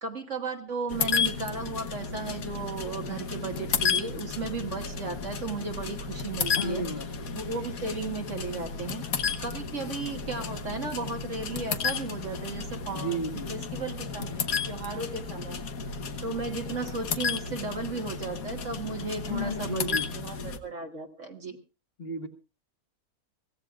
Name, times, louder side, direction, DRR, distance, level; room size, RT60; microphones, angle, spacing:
voice 1, 0.0-6.8 7.3-9.0 9.4-13.2 13.5-15.6 16.2-21.6, right 4 dB, 55° right, 2 dB, 1.8 m, -35 dB
sound 1, 0.9-20.6, left 5 dB, 70° left, 1.6 m, -33 dB
voice 2, 6.5-7.1 12.9-13.6 19.2-20.1 22.0-22.3, equal, 45° left, 6 dB, 1.9 m, -32 dB
24.0 x 16.5 x 2.4 m, 0.32 s
omnidirectional pair, 1.5 m